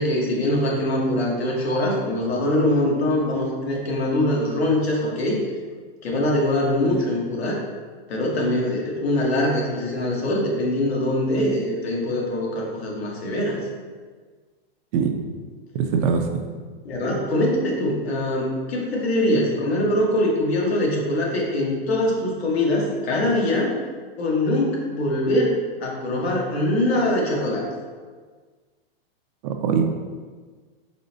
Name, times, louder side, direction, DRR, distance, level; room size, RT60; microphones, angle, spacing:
voice 1, 0.0-5.4 6.0-7.6 8.1-13.6 16.8-23.8 24.2-25.5 25.8-27.7, left 1 dB, 85° left, -2 dB, 1.3 m, -23 dB
voice 2, 15.7-16.3 29.4-29.8, right 6 dB, 40° right, 5 dB, 0.4 m, -21 dB
4.1 x 2.9 x 3.9 m, 1.5 s
hypercardioid pair, 135°, 30 cm